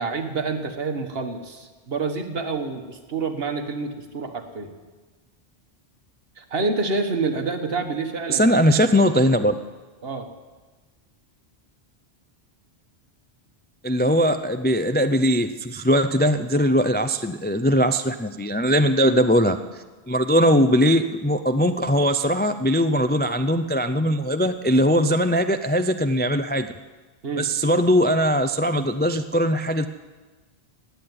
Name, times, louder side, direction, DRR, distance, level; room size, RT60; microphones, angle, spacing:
voice 1, 0.0-4.7 6.4-8.5 10.0-10.3 27.2-27.5, right 4 dB, 65° right, 6 dB, 1.6 m, -28 dB
voice 2, 8.3-9.5 13.8-19.6 20.1-26.7 27.4-29.9, equal, 15° left, 9 dB, 0.3 m, -20 dB
16.5 x 9.2 x 9.6 m, 1.3 s
omnidirectional pair, 1.1 m